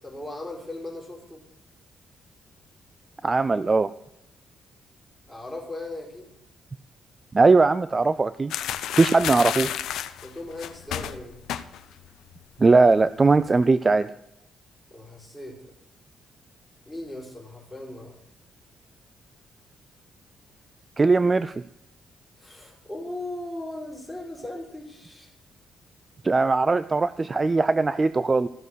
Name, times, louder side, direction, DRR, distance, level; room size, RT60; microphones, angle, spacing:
voice 1, 0.0-1.4 5.3-6.3 10.2-11.4 14.9-15.7 16.9-18.2 22.4-25.3, left 1 dB, 5° left, -3 dB, 4.9 m, -38 dB
voice 2, 3.2-3.9 7.3-8.5 9.0-9.7 12.6-14.1 21.0-21.6 26.2-28.5, right 3 dB, 25° right, 14 dB, 0.4 m, -20 dB
sound 1, 8.5-12.1 12.3-12.6 12.9-13.6, left 10 dB, 90° left, 0.7 m, -31 dB
14.5 x 7.2 x 6.3 m, 0.81 s
cardioid pair, 115°, 0 cm